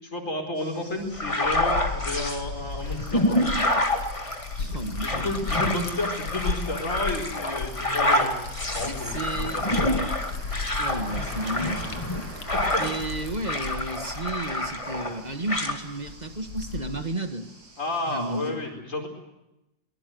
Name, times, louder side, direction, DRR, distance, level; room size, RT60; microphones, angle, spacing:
voice 1, 0.0-3.2 5.0-8.3 8.7-10.0 12.7-12.8 17.8-19.1, left 2 dB, 45° left, 2 dB, 4.9 m, -31 dB
sound 1, 0.5-18.5, right 2 dB, 85° right, 4.6 m, -47 dB
Liquid, 1.0-17.1, left 4 dB, 65° left, 2.1 m, -36 dB
sound 2, 1.1-2.4 2.9-13.2 13.4-15.2 15.5-15.8, left 1 dB, 15° left, 2.4 m, -27 dB
voice 2, 4.6-5.3 8.9-9.6 10.8-12.0 12.8-17.5 18.1-18.6, right 2 dB, 25° right, 8 dB, 1.7 m, -33 dB
24.0 x 20.5 x 7.9 m, 0.89 s
omnidirectional pair, 1.9 m